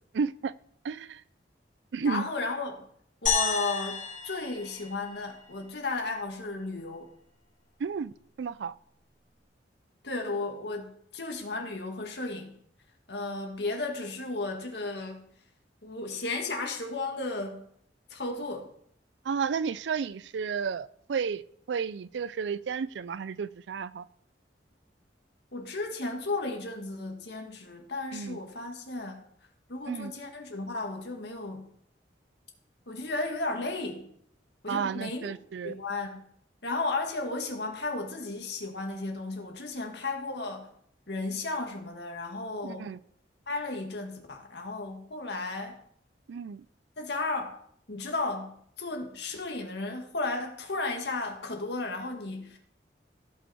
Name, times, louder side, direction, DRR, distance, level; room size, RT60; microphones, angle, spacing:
voice 1, 0.1-0.5 0.8-1.2 1.9-2.3 7.8-8.1 8.4-8.7 19.3-21.4 21.7-24.0 28.1-28.4 29.9-30.1 34.7-35.7 42.6-43.0 46.3-46.6, right 6 dB, 80° right, 0.4 m, -32 dB
voice 2, 2.0-2.9 3.2-7.1 10.0-12.5 13.1-15.2 15.8-17.6 18.1-18.7 25.5-29.2 29.7-31.7 32.9-34.1 34.6-35.3 35.6-36.2 36.6-40.7 41.1-42.9 43.5-45.8 47.0-47.6 47.9-52.6, left 3 dB, 65° left, 1.9 m, -34 dB
sound 1, 3.3-5.7, left 5 dB, 50° left, 3.6 m, -31 dB
16.0 x 5.6 x 4.3 m
head